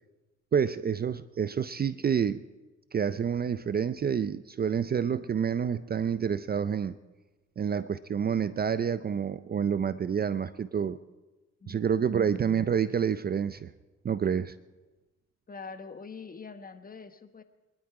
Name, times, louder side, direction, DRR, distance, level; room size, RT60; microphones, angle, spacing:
voice 1, 0.5-2.4 2.9-6.9 7.6-11.0 11.7-13.7 14.0-14.5, right 7 dB, 30° right, 14 dB, 0.5 m, -28 dB
voice 2, 11.6-12.2 15.5-17.4, left 5 dB, 30° left, 9 dB, 1.1 m, -44 dB
24.0 x 11.5 x 4.8 m, 1.2 s
cardioid pair, 90°, 30 cm